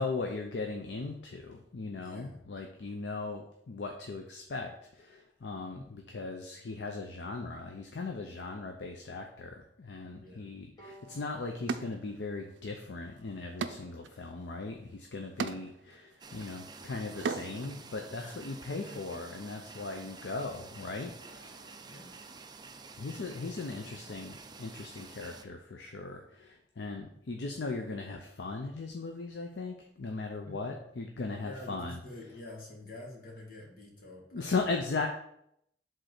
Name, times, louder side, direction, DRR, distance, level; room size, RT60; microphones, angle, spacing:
voice 1, 0.0-21.7 23.0-32.3 34.3-35.1, left 3 dB, 70° left, 3 dB, 0.6 m, -38 dB
voice 2, 2.0-2.4 5.5-5.8 10.1-10.6 15.3-15.7 18.1-18.4 18.7-19.0 19.4-19.9 21.8-22.2 30.4-30.7 31.4-34.7, left 1 dB, 55° left, -2 dB, 1.9 m, -48 dB
Bowed string instrument, 10.8-14.1, right 1 dB, 25° left, 1.7 m, -59 dB
sound 1, 10.9-11.0 11.7-12.6 12.9-17.7, right 5 dB, 90° right, 0.4 m, -39 dB
sound 2, 16.2-25.4, right 4 dB, 25° right, 0.5 m, -50 dB
5.2 x 3.8 x 5.8 m, 0.75 s
head